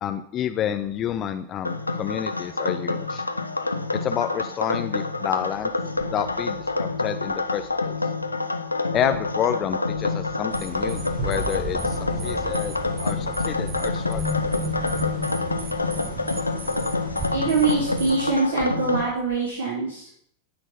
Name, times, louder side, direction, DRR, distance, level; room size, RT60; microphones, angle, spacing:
voice 1, 0.0-3.2 4.0-5.7 6.1-7.9 8.9-12.7 13.0-14.4, left 10 dB, 30° left, 9 dB, 0.8 m, -29 dB
sound 1, 1.0-1.2 5.5-7.9 8.9-9.2 9.6-10.4 10.8-17.9 18.2-19.4, left 1 dB, 40° right, 3.7 m, -35 dB
sound 2, 1.6-19.0, left 3 dB, 80° left, 0.9 m, -27 dB
sound 3, 10.5-18.2, right 4 dB, 20° right, 1.7 m, -37 dB
voice 2, 17.3-20.1, right 4 dB, 65° right, -6 dB, 4.5 m, -24 dB
18.0 x 6.6 x 6.0 m, 0.64 s
figure-of-eight pair, 90°, 0 cm